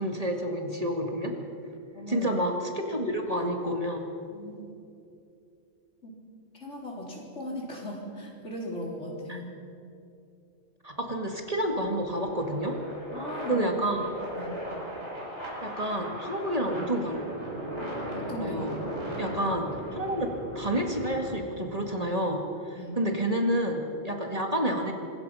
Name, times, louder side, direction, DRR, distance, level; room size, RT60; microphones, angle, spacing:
voice 1, 0.0-1.4 2.1-4.1 9.3-9.4 10.8-12.8 13.5-14.0 15.6-17.2 18.4-18.7 19.2-20.3 20.5-24.9, right 1 dB, 30° right, 2 dB, 2.0 m, -29 dB
voice 2, 1.9-2.3 4.3-4.6 6.0-6.2 6.5-9.5 13.1-13.7 14.0-14.6 18.1-18.6 19.0-19.2 22.7-23.0, left 1 dB, 65° left, -2 dB, 4.2 m, -38 dB
sound 1, 10.9-21.3, equal, 60° right, 5.7 m, -38 dB
25.0 x 21.5 x 5.6 m, 2.6 s
omnidirectional pair, 1.3 m